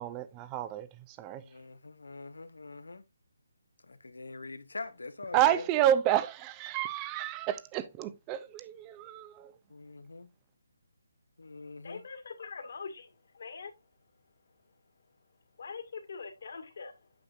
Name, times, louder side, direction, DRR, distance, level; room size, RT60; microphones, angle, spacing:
voice 1, 0.0-1.4 5.3-9.5, right 11 dB, 20° right, 0.5 m, -30 dB
voice 2, 1.4-3.0 3.8-5.7 9.7-10.3 11.4-12.0, left 3 dB, 85° left, 1.1 m, -44 dB
voice 3, 11.8-13.8 15.6-17.1, left 5 dB, 55° left, 1.9 m, -43 dB
8.5 x 6.4 x 2.5 m
figure-of-eight pair, 160°, 0 cm